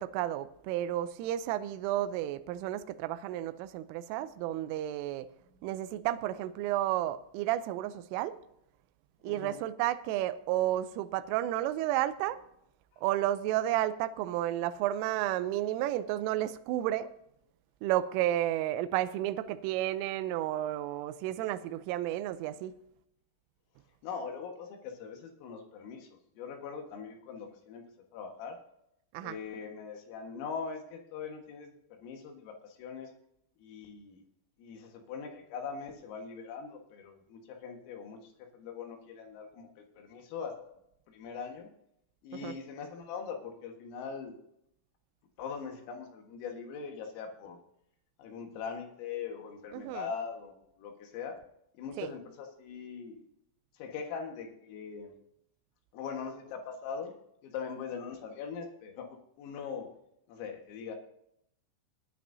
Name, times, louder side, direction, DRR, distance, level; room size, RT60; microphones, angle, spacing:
voice 1, 0.0-5.3 5.6-8.3 9.2-12.4 13.0-17.1 17.8-22.7 29.1-29.4 42.4-42.5 49.7-50.1 52.0-52.1, right 13 dB, 80° right, 3.0 m, -32 dB
voice 2, 9.2-9.6 24.0-27.8 28.1-28.6 29.2-33.1 33.6-34.3 34.6-40.6 41.1-41.7 42.2-44.3 45.4-47.6 48.2-51.4 51.7-53.2 53.7-55.1 55.9-57.1 57.4-59.9 60.3-61.0, left 6 dB, 80° left, 4.2 m, -41 dB
18.5 x 10.0 x 2.7 m
omnidirectional pair, 6.0 m